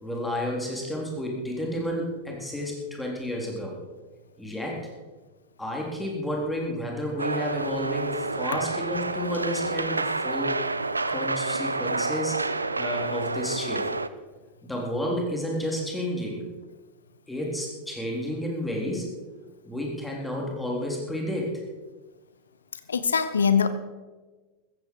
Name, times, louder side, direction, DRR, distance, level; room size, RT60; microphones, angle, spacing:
voice 1, 0.0-3.8 4.4-4.8 5.6-10.6 11.1-12.4 12.8-13.9 14.6-16.4 17.3-19.1 19.6-21.6, equal, 5° left, -1 dB, 3.7 m, -31 dB
sound 1, 7.2-14.1, right 3 dB, 80° right, 0.5 m, -29 dB
voice 2, 22.9-23.7, left 6 dB, 70° left, 11 dB, 0.9 m, -22 dB
15.0 x 15.0 x 4.8 m, 1.3 s
figure-of-eight pair, 90°, 0 cm